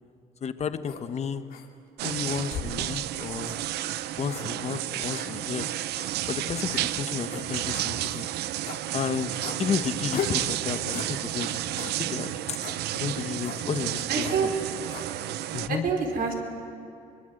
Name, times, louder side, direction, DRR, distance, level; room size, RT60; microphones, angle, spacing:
voice 1, 0.4-1.5 2.0-3.5 4.2-5.7 6.3-8.3 8.9-12.6 12.9-14.5 15.5-15.9, left 7 dB, 40° left, 10 dB, 1.2 m, -32 dB
sound 1, 0.8-1.0 1.5-1.7 2.2-2.8 3.4-3.6 4.3-4.5 5.1-5.3 5.9-6.1 6.7-6.9 7.3-7.5 8.0-8.2 8.6-8.8 9.4-9.6 10.1-10.4 10.9-11.1 11.8-12.0 12.6-12.8 13.4-13.6 14.2-14.4 14.9-15.1, left 8 dB, 65° left, 2.7 m, -37 dB
sound 2, 2.0-15.7, right 14 dB, 75° right, 0.7 m, -31 dB
voice 2, 14.1-14.5 15.7-16.3, right 5 dB, 60° right, 2 dB, 4.8 m, -26 dB
24.0 x 22.0 x 7.9 m, 2.6 s
cardioid pair, 110°, 17 cm